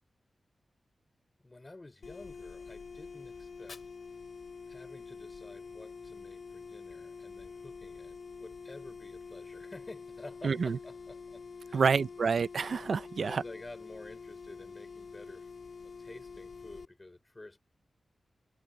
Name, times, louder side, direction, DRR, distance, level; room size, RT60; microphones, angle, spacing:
voice 1, 1.4-3.8 4.6-12.0 13.2-15.5 15.8-17.6, left 2 dB, 25° left, 4.5 m, -50 dB
sound 1, 2.0-16.9, left 5 dB, 70° left, 1.7 m, -47 dB
Fire, 3.4-5.4, left 4 dB, 55° left, 6.3 m, -57 dB
voice 2, 10.4-10.8 11.7-13.4, right 5 dB, 70° right, 0.4 m, -28 dB
wide cardioid pair, 125°, 0 cm